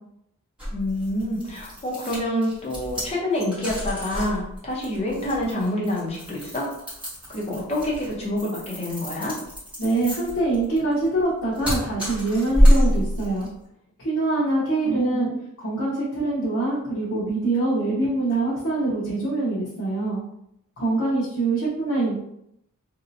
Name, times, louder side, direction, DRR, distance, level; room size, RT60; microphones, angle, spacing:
sound 1, 0.6-13.5, equal, 5° right, 1.4 m, -25 dB
voice 1, 0.7-6.7 7.3-9.4 14.8-15.3, left 1 dB, 30° left, -4 dB, 0.7 m, -27 dB
voice 2, 9.8-13.5 14.0-15.3 15.6-20.2 20.8-22.2, right 2 dB, 60° left, -8 dB, 0.9 m, -24 dB
3.0 x 2.7 x 2.6 m, 0.78 s
head